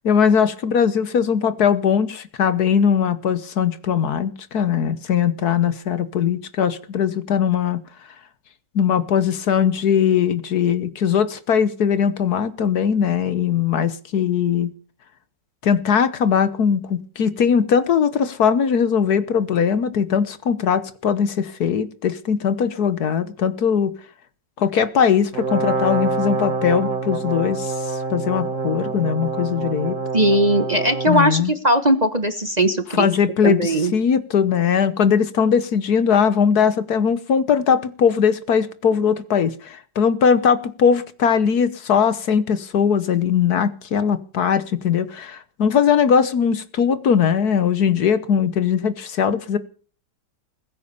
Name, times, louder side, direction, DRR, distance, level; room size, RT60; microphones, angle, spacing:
voice 1, 0.0-7.8 8.7-14.7 15.6-23.9 24.6-30.0 31.1-31.5 32.9-49.6, left 7 dB, 60° left, 15 dB, 1.5 m, -20 dB
Brass instrument, 25.3-31.2, right 3 dB, 45° right, 1.9 m, -26 dB
voice 2, 30.1-33.1 33.4-33.9, right 1 dB, 25° right, 9 dB, 1.2 m, -19 dB
21.0 x 9.6 x 6.9 m, 0.41 s
omnidirectional pair, 1.9 m